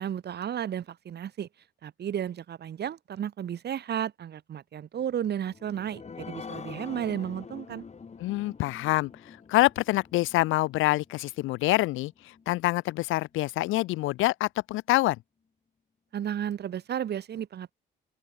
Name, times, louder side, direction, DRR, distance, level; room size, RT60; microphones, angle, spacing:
voice 1, 0.0-1.5 1.8-7.8 16.1-17.7, right 9 dB, 55° right, 1.3 m, -33 dB
sound 1, 5.4-12.4 12.9-13.0 13.3-13.4, left 5 dB, 35° left, 2.1 m, -45 dB
voice 2, 8.2-9.1 9.5-15.2, left 18 dB, 85° left, 0.5 m, -26 dB
open air
cardioid pair, 90°, 20 cm